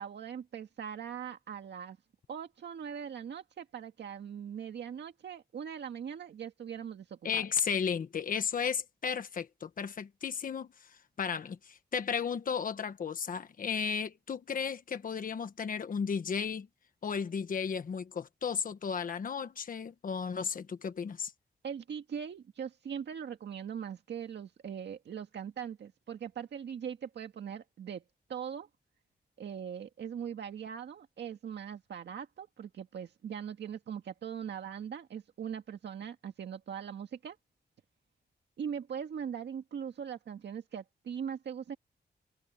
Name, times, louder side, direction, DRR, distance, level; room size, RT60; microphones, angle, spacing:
voice 1, 0.0-2.0 2.3-7.5 21.6-28.0 28.3-28.7 29.4-37.4 38.6-41.8, right 8 dB, 85° right, 1.8 m, -41 dB
voice 2, 7.2-10.7 11.2-16.7 17.0-21.3, left 6 dB, 50° left, 1.3 m, -34 dB
wide cardioid pair, 150°, 18 cm